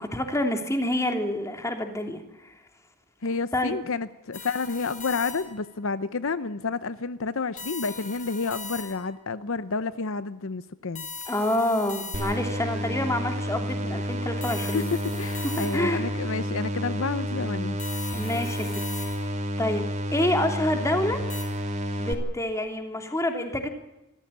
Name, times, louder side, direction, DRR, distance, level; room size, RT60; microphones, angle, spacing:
voice 1, 0.0-2.5 3.5-3.7 11.3-14.9 15.6-16.0 18.1-18.8 19.6-21.2 22.0-23.7, left 1 dB, 15° left, 5 dB, 3.0 m, -27 dB
voice 2, 3.2-11.1 14.6-17.8, left 4 dB, 60° left, 14 dB, 0.7 m, -30 dB
sound 1, 4.3-5.7 7.6-9.2 11.0-12.6 14.4-16.1 17.8-19.5 21.3-21.4, left 4 dB, 35° left, 6.1 m, -40 dB
sound 2, 12.1-22.1, equal, 30° right, 3.3 m, -30 dB
25.5 x 15.0 x 8.7 m, 0.94 s
head